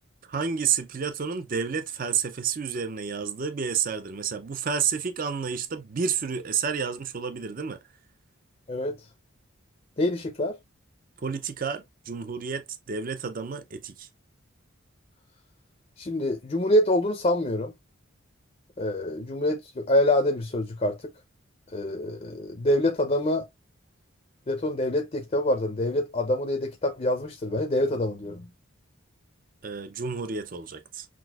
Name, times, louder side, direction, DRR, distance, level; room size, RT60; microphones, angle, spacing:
voice 1, 0.3-7.8 11.2-14.1 29.6-31.1, right 6 dB, 40° right, 0.4 m, -30 dB
voice 2, 10.0-10.6 16.0-17.7 18.8-21.0 21.7-23.4 24.5-28.5, left 1 dB, 30° left, 0.5 m, -25 dB
6.0 x 2.5 x 2.3 m
head